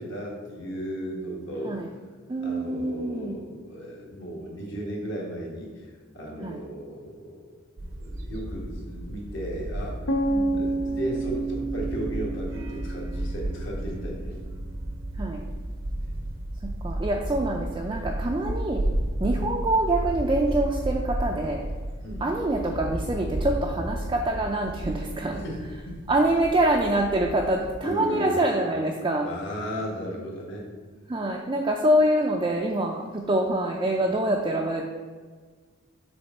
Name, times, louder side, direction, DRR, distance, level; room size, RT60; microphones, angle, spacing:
voice 1, 0.0-1.8 2.4-7.6 8.0-10.0 10.5-14.3 22.0-22.3 25.3-26.0 27.5-28.5 29.2-30.6, equal, 60° left, -2 dB, 1.4 m, -35 dB
voice 2, 2.3-3.4 6.4-6.6 10.3-10.7 15.2-15.4 16.6-18.8 19.2-21.6 22.2-25.4 26.1-29.3 31.1-34.8, right 1 dB, 20° right, -1 dB, 0.3 m, -25 dB
sound 1, 7.8-27.7, right 1 dB, 70° right, 0.7 m, -33 dB
sound 2, 10.1-14.0, right 2 dB, 80° left, 0.6 m, -30 dB
6.6 x 3.5 x 4.1 m, 1.5 s
head